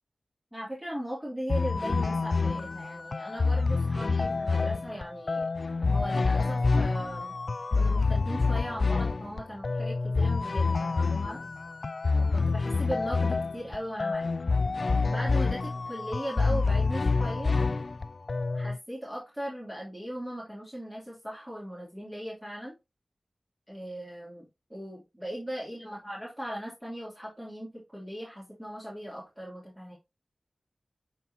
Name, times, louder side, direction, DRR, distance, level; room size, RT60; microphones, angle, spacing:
voice 1, 0.5-5.5 5.9-7.3 7.7-11.4 12.2-14.3 15.0-17.5 18.5-22.7 23.7-24.4 24.7-29.9, equal, 10° right, -5 dB, 2.9 m, -38 dB
sound 1, 1.5-18.8, left 4 dB, 70° left, 0.3 m, -27 dB
9.0 x 4.1 x 2.8 m, 0.23 s
cardioid pair, 45°, 0 cm